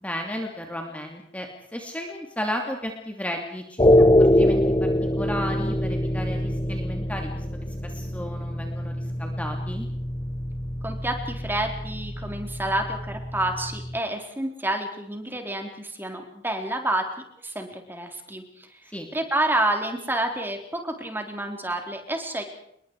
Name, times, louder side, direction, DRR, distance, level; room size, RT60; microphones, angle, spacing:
voice 1, 0.0-4.9 5.2-7.4 7.8-8.9 9.2-9.9 18.9-19.1, left 1 dB, 10° left, 2 dB, 2.9 m, -34 dB
sound 1, 3.8-14.0, left 1 dB, 25° left, 1.1 m, -24 dB
voice 2, 10.8-17.0 17.4-18.8 19.1-22.4, right 1 dB, 10° right, 4 dB, 4.1 m, -29 dB
28.5 x 22.5 x 4.9 m, 0.74 s
head